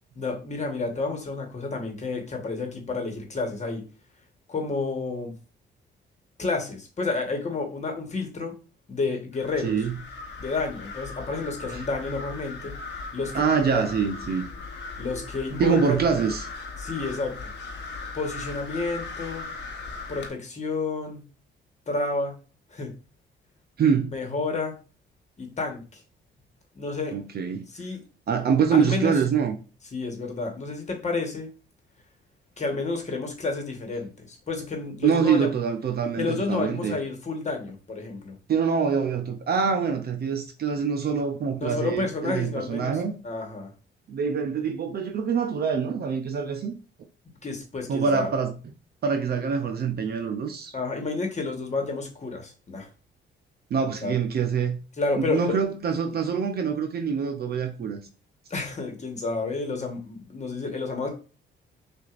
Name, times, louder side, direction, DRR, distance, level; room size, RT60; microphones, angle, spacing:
voice 1, 0.1-3.8 4.5-5.3 6.4-8.5 8.9-9.8 10.4-12.8 13.1-13.5 13.7-13.8 15.0-16.0 16.8-17.5 18.1-19.5 20.1-21.3 21.9-22.4 22.7-22.9 24.1-24.8 25.4-26.0 26.7-27.1 27.7-28.0 28.7-29.1 29.9-31.5 32.6-35.5 36.2-38.3 41.6-43.7 47.4-48.3 50.7-52.9 54.0-54.1 55.0-55.5 58.5-61.1, left 3 dB, 35° left, 1.3 m, -30 dB
sound 1, 9.3-20.3, left 3 dB, 60° left, 0.9 m, -38 dB
voice 2, 9.6-10.0 11.7-11.8 13.3-14.5 15.6-16.5 23.8-24.1 27.1-27.7 28.3-29.6 35.0-37.0 38.5-43.1 44.1-46.7 47.9-48.5 49.0-50.7 53.7-54.8 55.2-58.0, right 6 dB, 50° right, 0.6 m, -25 dB
6.2 x 2.5 x 2.5 m
cardioid pair, 90°, 20 cm